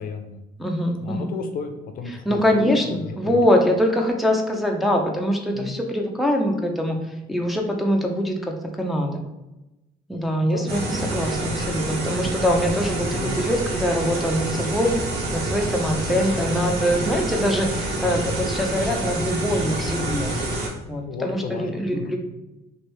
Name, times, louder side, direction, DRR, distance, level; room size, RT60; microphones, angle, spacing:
voice 1, 0.0-0.4 1.0-3.4 5.5-5.7 10.4-10.9 13.1-13.4 16.1-16.3 16.9-17.1 21.0-22.2, left 5 dB, 55° left, 6 dB, 0.5 m, -33 dB
voice 2, 0.6-1.3 2.3-7.0 7.3-9.2 10.1-14.9 15.3-20.3 20.9-22.2, equal, ahead, 1 dB, 0.4 m, -23 dB
sound 1, 10.7-20.7, right 2 dB, 70° right, 1.1 m, -27 dB
2.8 x 2.6 x 3.2 m, 0.97 s
cardioid pair, 110°, 17 cm